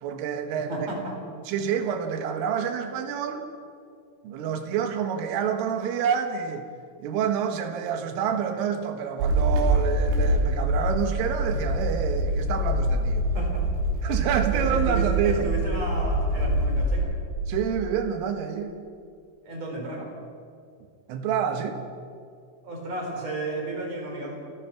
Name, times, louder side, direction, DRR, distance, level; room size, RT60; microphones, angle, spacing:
voice 1, 0.0-1.0 1.5-3.5 4.2-6.7 7.0-13.3 14.0-15.5 17.5-18.8 21.1-21.8, right 7 dB, 90° right, 6 dB, 4.1 m, -28 dB
voice 2, 0.7-1.1 13.3-13.6 14.5-17.1 19.4-20.1 22.6-24.3, right 2 dB, 35° right, 0 dB, 4.9 m, -33 dB
sound 1, 9.2-17.0, right 1 dB, 75° right, 5.7 m, -25 dB
29.0 x 15.0 x 6.0 m, 2.3 s
omnidirectional pair, 5.6 m